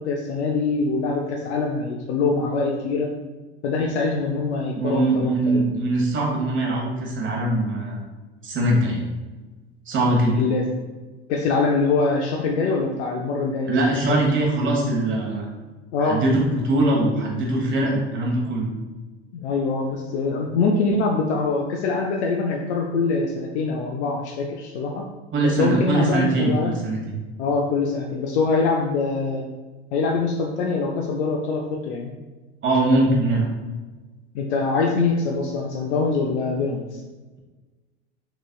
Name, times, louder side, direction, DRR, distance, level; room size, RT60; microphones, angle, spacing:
voice 1, 0.0-3.1 3.6-5.7 10.4-10.7 11.3-14.2 15.9-16.2 19.3-25.1 25.4-26.8 27.4-29.4 29.9-32.1 34.3-37.0, left 4 dB, 75° left, 1 dB, 0.5 m, -24 dB
voice 2, 4.8-8.0 8.4-9.0 9.9-10.4 13.7-15.5 16.0-18.7 25.3-27.2 32.6-33.5, right 2 dB, 35° right, -1 dB, 1.2 m, -22 dB
3.9 x 3.1 x 2.3 m, 1.3 s
hypercardioid pair, 90°, 34 cm